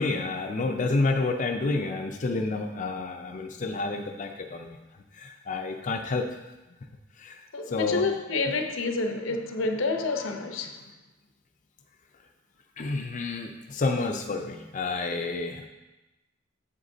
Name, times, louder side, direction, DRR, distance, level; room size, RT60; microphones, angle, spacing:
voice 1, 0.0-4.8 5.1-6.3 7.2-8.0 12.8-15.7, left 3 dB, 40° left, 0.5 m, -29 dB
voice 2, 7.5-10.8, left 3 dB, 75° left, 0.7 m, -28 dB
8.0 x 7.9 x 2.7 m
head